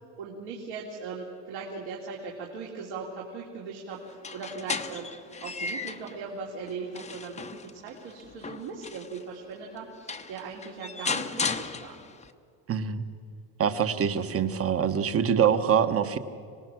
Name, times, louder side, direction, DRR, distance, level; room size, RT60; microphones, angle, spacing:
voice 1, 0.2-5.1 5.4-7.4 7.7-11.9, right 5 dB, 65° right, -2 dB, 3.1 m, -39 dB
sound 1, 4.1-6.2 6.7-9.2 9.8-9.9 10.1-12.3, left 4 dB, 15° left, 0.9 m, -35 dB
voice 2, 12.7-13.0 13.6-16.2, right 8 dB, 30° right, 10 dB, 1.3 m, -24 dB
25.5 x 19.0 x 6.3 m, 2.3 s
supercardioid pair, 120°, 49 cm